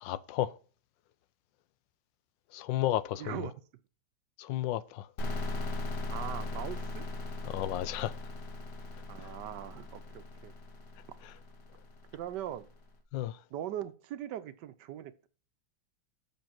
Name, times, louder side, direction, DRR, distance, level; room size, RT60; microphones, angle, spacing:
voice 1, 0.0-0.5 2.5-3.3 4.4-5.1 7.5-8.1 13.1-13.3, left 13 dB, 85° left, 1.3 m, -32 dB
voice 2, 3.2-3.5 6.1-7.1 9.1-10.5 12.1-12.7 13.5-15.3, right 11 dB, 75° right, 1.2 m, -40 dB
sound 1, 5.2-12.7, left 2 dB, 70° left, 1.7 m, -39 dB
7.3 x 5.5 x 5.8 m
omnidirectional pair, 2.0 m